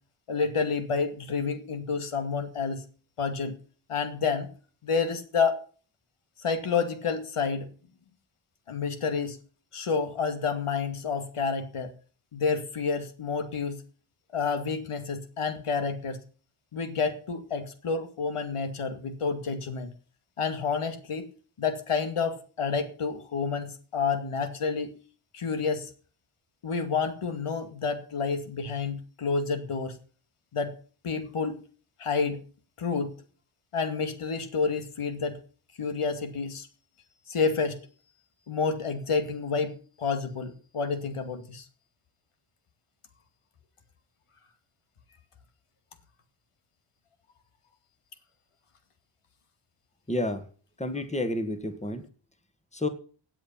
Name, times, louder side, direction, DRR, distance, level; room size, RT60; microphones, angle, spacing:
voice 1, 0.3-2.8 3.2-3.6 3.9-4.5 4.8-5.6 6.4-7.7 8.7-9.4 9.7-11.9 12.3-13.8 14.3-16.2 16.7-19.9 20.4-21.3 21.6-25.0 25.3-25.9 26.6-30.0 30.5-30.7 31.0-31.6 32.0-32.4 32.8-33.1 33.7-35.4 35.8-36.7 37.3-37.8 38.5-41.6, left 5 dB, 90° left, 8 dB, 2.5 m, -29 dB
voice 2, 50.1-50.5 50.8-52.1 52.7-52.9, left 1 dB, 15° left, 10 dB, 1.7 m, -30 dB
17.0 x 8.9 x 5.8 m, 0.40 s
wide cardioid pair, 140°, 50 cm